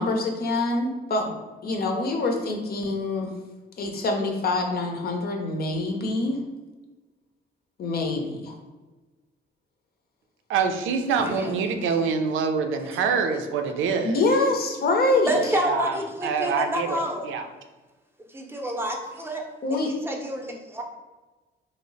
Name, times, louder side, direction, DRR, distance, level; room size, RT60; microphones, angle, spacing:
voice 1, 0.0-3.3 3.8-6.4 7.8-8.5 14.0-15.3 19.6-19.9, left 2 dB, 50° left, 3 dB, 0.7 m, -25 dB
voice 2, 10.5-14.2 15.5-17.4, right 5 dB, 80° right, 6 dB, 0.5 m, -26 dB
voice 3, 15.2-17.2 18.3-19.4 19.7-20.8, equal, 10° right, 1 dB, 0.6 m, -29 dB
3.1 x 2.0 x 3.8 m, 1.2 s
cardioid pair, 90°, 20 cm